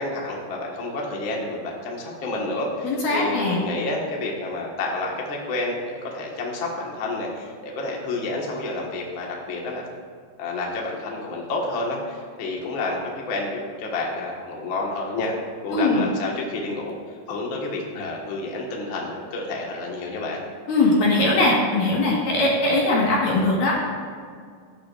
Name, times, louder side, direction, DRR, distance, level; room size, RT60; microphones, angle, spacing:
voice 1, 0.0-9.8 10.4-15.3 15.6-17.0 17.3-20.4, left 2 dB, 85° left, -2 dB, 1.1 m, -29 dB
voice 2, 2.8-3.6 15.7-16.1 20.7-23.7, left 2 dB, 60° left, -4 dB, 2.8 m, -20 dB
19.5 x 8.5 x 2.5 m, 2.1 s
omnidirectional pair, 5.1 m